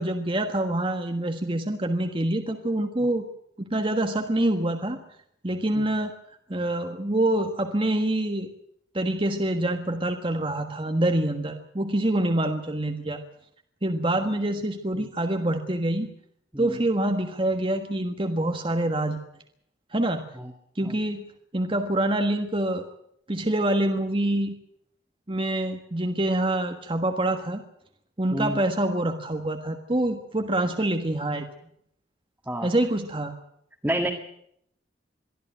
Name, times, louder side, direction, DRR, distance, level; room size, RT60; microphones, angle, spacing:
voice 1, 0.0-3.2 3.6-5.0 5.4-6.1 6.5-8.5 8.9-13.2 13.8-16.1 16.6-19.2 19.9-20.2 20.7-21.2 21.5-22.8 23.3-24.6 25.3-27.6 28.2-31.4 32.6-33.3, right 1 dB, 30° right, 5 dB, 1.4 m, -26 dB
voice 2, 5.7-5.8 14.9-15.1 16.5-16.8 20.4-20.5 20.8-21.0 28.3-28.6 32.5-32.7 33.8-34.1, right 1 dB, 10° right, 0 dB, 2.0 m, -29 dB
23.0 x 14.0 x 9.2 m, 0.71 s
head